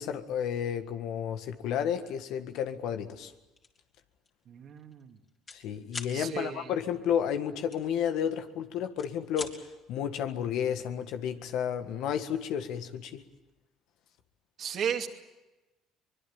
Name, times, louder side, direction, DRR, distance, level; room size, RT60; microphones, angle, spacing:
voice 1, 0.0-3.3 5.5-13.2, left 8 dB, 70° left, 1.7 m, -32 dB
sound 1, 3.6-3.8 4.2-4.4 4.7-5.6 5.9-6.2 7.7-8.5 8.8-9.6, left 4 dB, 35° left, 3.9 m, -42 dB
voice 2, 4.5-5.2 6.1-6.7 14.6-15.1, right 8 dB, 55° right, 2.6 m, -34 dB
24.0 x 21.5 x 8.8 m
supercardioid pair, 70°, 0 cm